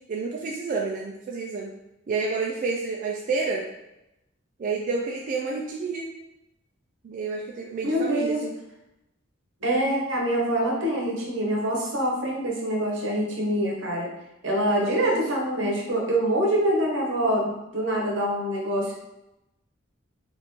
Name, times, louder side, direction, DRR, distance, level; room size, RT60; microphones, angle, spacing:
voice 1, 0.1-1.7 2.1-3.7 4.6-6.1 7.0-8.5 14.7-15.2, right 4 dB, 45° right, -1 dB, 0.3 m, -29 dB
voice 2, 7.8-8.4 9.6-14.1 14.4-18.9, right 1 dB, 75° right, -1 dB, 0.8 m, -25 dB
2.9 x 2.4 x 3.5 m, 0.92 s
head